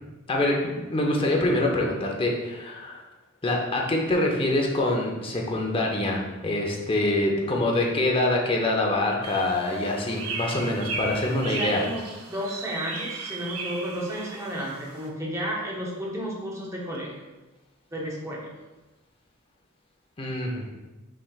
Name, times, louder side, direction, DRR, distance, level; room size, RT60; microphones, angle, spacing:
voice 1, 0.3-3.0 3.4-11.8 20.2-20.7, left 1 dB, 25° left, 0 dB, 0.6 m, -25 dB
sound 1, 9.2-15.1, right 3 dB, 90° right, 0.7 m, -36 dB
voice 2, 11.4-17.2 17.9-18.5, equal, 15° right, -4 dB, 0.8 m, -32 dB
5.8 x 3.3 x 2.4 m, 1.1 s
head